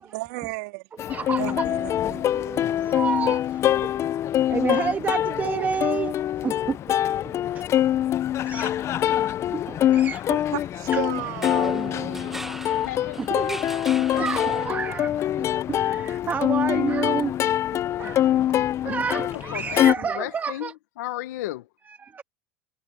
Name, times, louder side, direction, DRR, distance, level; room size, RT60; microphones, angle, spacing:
voice 1, 0.0-0.8 1.4-1.9 10.3-11.9, right 23 dB, 75° right, 2.9 m, -33 dB
Plucked string instrument, 1.0-19.9, left 12 dB, 30° left, 0.4 m, -24 dB
voice 2, 1.1-4.0 4.5-7.6 8.4-9.1 9.5-10.3 10.9-11.0 11.5-12.4 13.2-13.8 14.1-17.3 18.0-20.7 21.9-22.2, right 6 dB, 20° right, 1.3 m, -31 dB
sound 1, 11.3-15.2, right 1 dB, 5° right, 1.0 m, -39 dB
voice 3, 12.8-13.2 14.1-14.2 18.8-20.7 21.0-21.7, left 15 dB, 90° left, 1.0 m, -34 dB
supercardioid pair, 135°, 9 cm